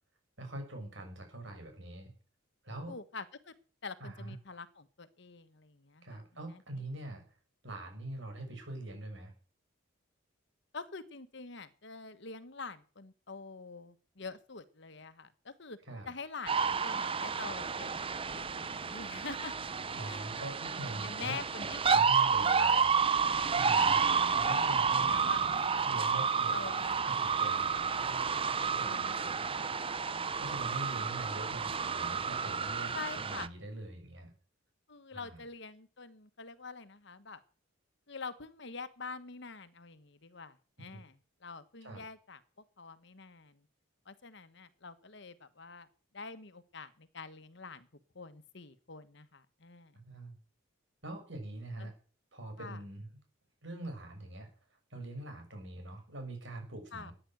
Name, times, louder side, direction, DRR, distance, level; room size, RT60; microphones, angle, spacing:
voice 1, 0.4-2.1 2.6-2.9 4.0-4.4 6.0-7.2 7.6-9.3 15.9-16.1 19.9-21.4 21.9-22.9 23.5-24.0 24.3-25.1 25.8-27.8 28.8-29.5 30.4-32.9 33.3-34.3 35.1-35.4 40.9-41.0 41.8-42.0 50.0-50.4 51.0-51.9 52.3-53.1 53.6-54.5 54.9-57.1, right 1 dB, 65° right, 4 dB, 6.7 m, -43 dB
voice 2, 2.9-3.5 3.8-6.6 10.7-15.8 16.0-19.5 20.1-20.2 20.7-23.1 23.7-24.1 24.6-25.4 26.5-27.2 27.5-28.1 28.8-29.3 32.9-33.5 34.9-37.4 38.1-41.1 41.4-42.4 42.8-43.7 44.0-45.9 46.1-47.9 48.1-50.0 51.8-51.9 52.6-52.8 56.9-57.1, left 4 dB, 60° left, 12 dB, 1.3 m, -46 dB
sound 1, 16.5-33.5, right 6 dB, 25° right, 0.7 m, -30 dB
14.5 x 10.0 x 7.8 m, 0.40 s
head